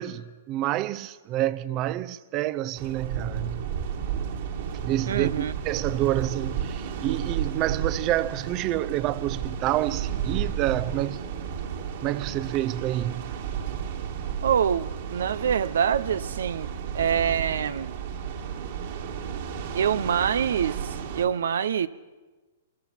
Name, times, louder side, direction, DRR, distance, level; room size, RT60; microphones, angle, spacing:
voice 1, 0.0-3.7 4.8-11.5 12.0-13.2, right 14 dB, 35° right, 0.7 m, -28 dB
sound 1, 2.8-21.3, right 8 dB, 60° right, 2.6 m, -33 dB
voice 2, 5.1-5.5 14.4-16.7 16.9-17.9 19.7-20.8 21.1-21.9, right 8 dB, 75° right, 0.6 m, -25 dB
26.0 x 21.5 x 5.9 m
hypercardioid pair, 125°, 0 cm